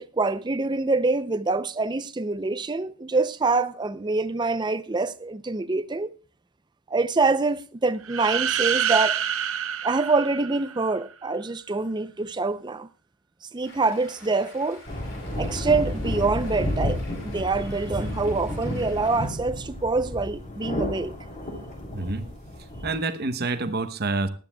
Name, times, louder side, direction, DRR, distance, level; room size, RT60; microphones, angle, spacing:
voice 1, 0.0-6.1 6.9-9.2 9.8-12.9 13.5-14.8 15.4-21.1, right 3 dB, 20° right, 0.4 m, -25 dB
sound 1, 8.0-11.0, right 8 dB, 65° right, 0.9 m, -27 dB
Stream, 13.6-19.3, left 2 dB, 55° left, 5.4 m, -48 dB
sound 2, 14.9-23.0, equal, 35° left, 2.9 m, -31 dB
voice 2, 21.9-22.3 22.8-24.3, right 3 dB, 45° right, 0.8 m, -27 dB
18.0 x 12.0 x 2.2 m
head